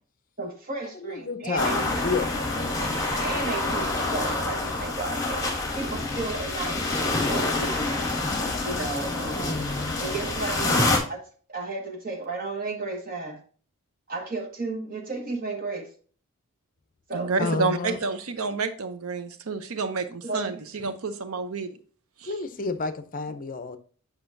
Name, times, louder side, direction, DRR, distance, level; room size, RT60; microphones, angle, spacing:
voice 1, 0.4-2.0 3.2-5.5 5.7-8.1 8.6-9.6 10.0-13.4 14.1-15.9 17.1-17.3 20.2-20.6, right 3 dB, 40° right, 1.5 m, -33 dB
voice 2, 1.0-2.3 9.4-10.0 17.4-18.0 22.2-23.8, left 3 dB, 40° left, 0.6 m, -30 dB
sound 1, 1.6-11.0, left 2 dB, 15° left, 1.8 m, -27 dB
voice 3, 17.1-21.8 22.2-22.3, right 4 dB, 75° right, 0.7 m, -29 dB
7.9 x 5.8 x 2.6 m
head